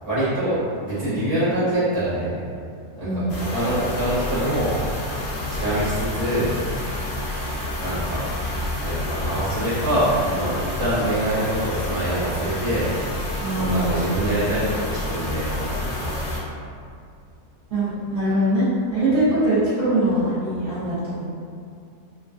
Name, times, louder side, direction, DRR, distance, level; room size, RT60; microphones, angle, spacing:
voice 1, 0.0-2.4 3.0-4.8 5.5-6.5 7.8-8.3 8.8-15.7 16.0-16.2 19.1-19.2, right 1 dB, 25° left, -14 dB, 0.5 m, -25 dB
voice 2, 3.0-3.3 13.4-14.0 17.7-21.3, right 1 dB, 50° right, -12 dB, 1.2 m, -22 dB
sound 1, 3.3-16.4, left 1 dB, 85° left, 1.2 m, -29 dB
2.9 x 2.3 x 2.5 m, 2.4 s
omnidirectional pair, 1.6 m